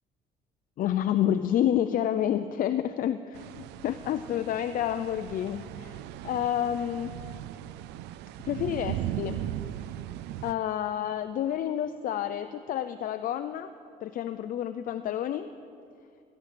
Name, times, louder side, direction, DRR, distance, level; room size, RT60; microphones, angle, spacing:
voice 1, 0.8-6.0 6.2-7.1 8.4-9.4 10.4-13.7 14.0-15.5, left 10 dB, 55° left, 9 dB, 0.5 m, -29 dB
sound 1, 3.3-10.5, right 12 dB, 85° right, 0.4 m, -38 dB
15.0 x 10.5 x 6.8 m, 2.5 s
cardioid pair, 110°, 17 cm